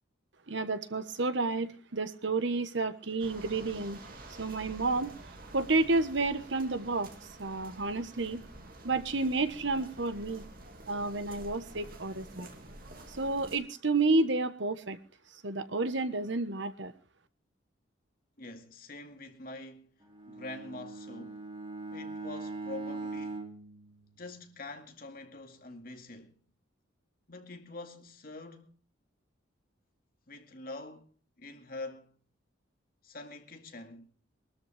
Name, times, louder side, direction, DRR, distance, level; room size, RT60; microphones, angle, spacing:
voice 1, 0.5-4.0 4.4-5.1 5.5-7.1 7.4-8.4 8.8-10.4 10.9-12.5 13.2-15.0 15.4-16.9, right 3 dB, 65° right, 1.2 m, -30 dB
sound 1, 3.2-13.6, right 1 dB, 45° right, 2.4 m, -49 dB
voice 2, 18.4-19.9 20.3-21.5 21.9-23.4 24.2-26.4 27.3-28.8 30.3-32.1 33.0-34.1, left 2 dB, 45° left, 2.0 m, -45 dB
Bowed string instrument, 20.0-24.7, right 3 dB, 25° right, 2.4 m, -41 dB
23.0 x 13.0 x 3.4 m
head